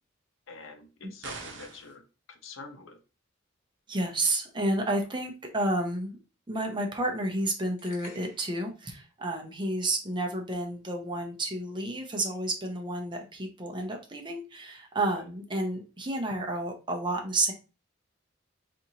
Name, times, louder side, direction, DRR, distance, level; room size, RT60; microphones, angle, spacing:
voice 1, 0.5-2.0 2.3-3.0 15.1-15.2, left 4 dB, 75° left, 5 dB, 0.7 m, -46 dB
sound 1, 1.2-2.0, right 4 dB, 65° right, 0.8 m, -41 dB
voice 2, 3.9-6.2 6.5-17.5, right 1 dB, 25° right, 3 dB, 0.6 m, -31 dB
sound 2, 7.8-8.6, left 2 dB, 40° left, 1.2 m, -50 dB
4.2 x 2.5 x 2.8 m, 0.33 s
head